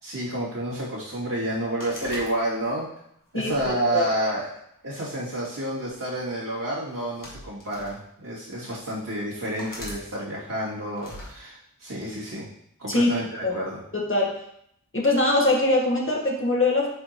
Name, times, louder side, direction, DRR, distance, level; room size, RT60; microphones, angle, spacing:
voice 1, 0.0-2.9 3.3-4.5 4.8-12.5 12.8-13.8, right 1 dB, 75° right, -9 dB, 2.5 m, -29 dB
sound 1, 1.8-2.9 3.5-4.7 5.6-5.9 6.9-8.0 8.7-8.8 9.6-10.0 11.0-11.3, left 1 dB, 70° left, 1.6 m, -41 dB
voice 2, 3.3-4.1 12.9-13.1 13.4-13.5 13.9-14.3 14.9-16.9, left 2 dB, 40° left, -2 dB, 1.4 m, -22 dB
8.5 x 3.9 x 2.9 m, 0.72 s
wide cardioid pair, 65°, 33 cm